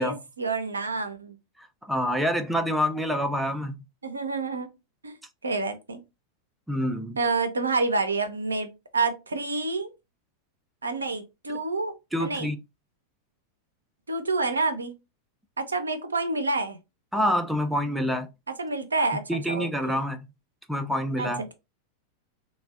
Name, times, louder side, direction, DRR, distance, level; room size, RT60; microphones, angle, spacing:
voice 1, 0.0-1.4 4.0-4.7 5.0-5.2 5.4-6.0 7.2-9.9 10.8-11.9 12.2-12.5 14.1-14.9 15.6-16.8 18.6-20.0 21.2-21.5, right 3 dB, 75° right, 0.4 m, -28 dB
voice 2, 1.9-3.7 6.7-7.2 12.1-12.6 17.1-18.3 19.3-20.3 20.7-21.4, equal, 5° right, 0.3 m, -26 dB
3.2 x 2.1 x 2.3 m
figure-of-eight pair, 90°, 0 cm